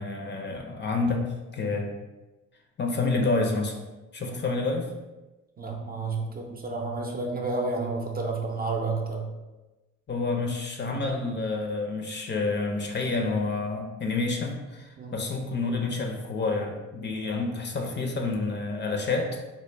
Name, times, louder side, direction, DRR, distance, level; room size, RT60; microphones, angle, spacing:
voice 1, 0.0-1.9 2.8-3.8 4.1-4.9 10.1-19.4, left 3 dB, 35° left, 2 dB, 0.5 m, -28 dB
voice 2, 5.6-9.3 15.0-15.1, right 3 dB, 30° right, 1 dB, 0.6 m, -31 dB
3.3 x 2.1 x 3.2 m, 1.1 s
cardioid pair, 90°, 30 cm